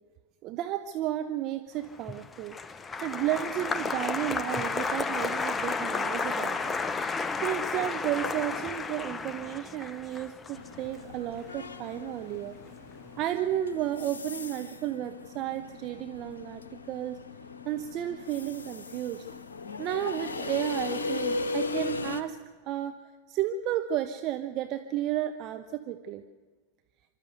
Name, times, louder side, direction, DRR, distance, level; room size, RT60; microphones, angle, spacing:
voice 1, 0.4-2.5 3.0-6.7 7.4-12.5 13.2-16.6 16.9-17.2 17.6-19.3 19.8-22.4 22.6-23.0 23.3-26.2, right 12 dB, 40° right, 8 dB, 0.8 m, -32 dB
Applause, 1.9-12.3 12.6-13.2, left 4 dB, 15° left, 0.6 m, -33 dB
sound 1, 10.5-22.2, left 3 dB, 70° left, 1.1 m, -37 dB
26.0 x 12.5 x 8.0 m, 1.5 s
figure-of-eight pair, 90°, 0 cm